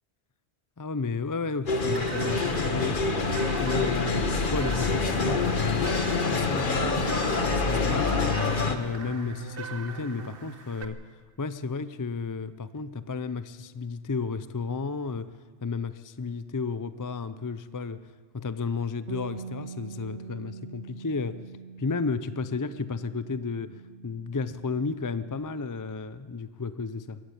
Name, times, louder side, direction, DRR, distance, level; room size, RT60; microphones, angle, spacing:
voice 1, 0.8-8.2 8.5-11.0 11.4-15.3 15.6-21.4 21.8-27.2, left 4 dB, 30° left, 13 dB, 0.3 m, -33 dB
sound 1, 1.7-8.8, left 3 dB, 45° left, 1.4 m, -26 dB
sound 2, 1.9-10.8, right 6 dB, 55° right, 1.4 m, -40 dB
Bass guitar, 19.1-25.3, right 5 dB, 80° right, 1.9 m, -44 dB
22.0 x 15.0 x 8.4 m, 1.5 s
omnidirectional pair, 1.2 m